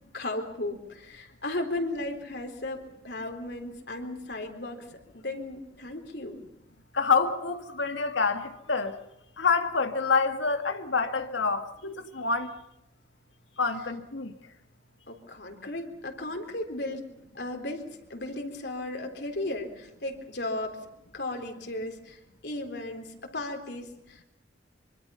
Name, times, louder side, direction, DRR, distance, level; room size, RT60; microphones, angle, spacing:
voice 1, 0.1-4.9 5.1-6.4 15.1-17.0 17.3-17.8 18.1-20.8 21.1-24.2, left 2 dB, 65° left, 3.9 m, -35 dB
voice 2, 6.9-8.9 9.4-12.5 13.6-14.3, left 4 dB, 90° left, 2.0 m, -27 dB
25.0 x 25.0 x 5.7 m
head